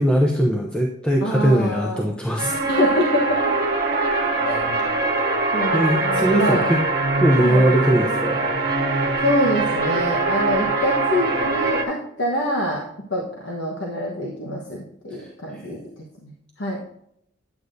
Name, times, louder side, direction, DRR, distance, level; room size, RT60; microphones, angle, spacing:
voice 1, 0.0-2.6 5.7-6.8 7.2-8.4 15.2-15.6, right 1 dB, 5° left, 0 dB, 0.6 m, -20 dB
voice 2, 1.2-2.0 2.6-3.5 4.4-4.6 5.5-6.7 7.4-7.7 9.2-12.8 13.1-16.3 16.6-16.8, left 1 dB, 65° left, -1 dB, 1.2 m, -25 dB
sound 1, 2.4-11.8, right 3 dB, 50° right, 1.2 m, -22 dB
9.5 x 8.3 x 2.7 m, 0.75 s
head